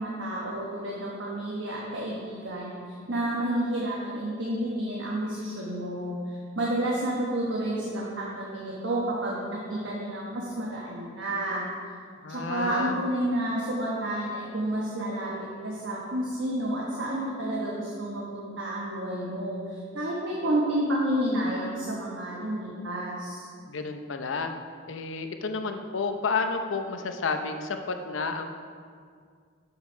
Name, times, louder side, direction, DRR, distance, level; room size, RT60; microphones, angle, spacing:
voice 1, 0.0-11.7 12.3-23.5, right 1 dB, 75° right, -4 dB, 1.2 m, -30 dB
voice 2, 12.2-13.0 23.7-24.5 24.9-28.5, left 4 dB, 80° left, 6 dB, 0.7 m, -31 dB
7.4 x 5.9 x 5.6 m, 2.1 s
head